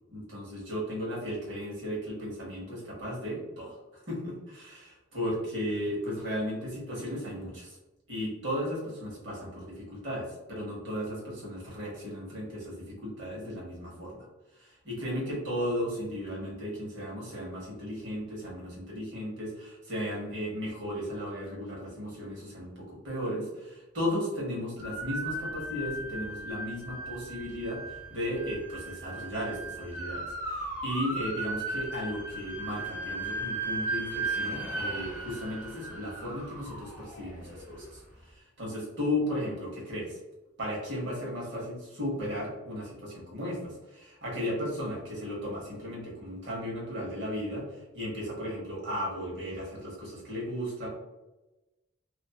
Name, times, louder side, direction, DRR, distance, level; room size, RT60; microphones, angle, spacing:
voice 1, 0.1-7.8 8.1-14.3 14.6-38.0 38.3-40.2 40.6-50.9, equal, 70° right, -4 dB, 1.0 m, -35 dB
sound 1, 24.8-37.8, right 2 dB, 10° right, 0.5 m, -36 dB
2.5 x 2.4 x 2.3 m, 1.1 s
head